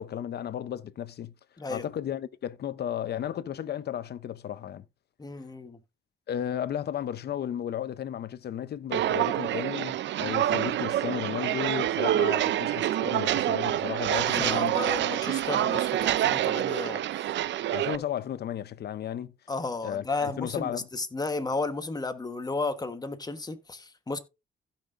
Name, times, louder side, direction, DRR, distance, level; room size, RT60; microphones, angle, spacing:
voice 1, 0.0-1.3 1.7-4.8 6.3-14.7 17.7-19.3 19.8-20.9, left 10 dB, 55° left, 0.7 m, -34 dB
voice 2, 1.6-1.9 5.2-5.8 14.1-17.0 19.5-24.2, left 3 dB, 20° left, 1.2 m, -33 dB
Walk footsteps, 8.9-18.0, right 12 dB, 65° right, 0.5 m, -27 dB
16.0 x 5.8 x 2.6 m
cardioid pair, 90°, 20 cm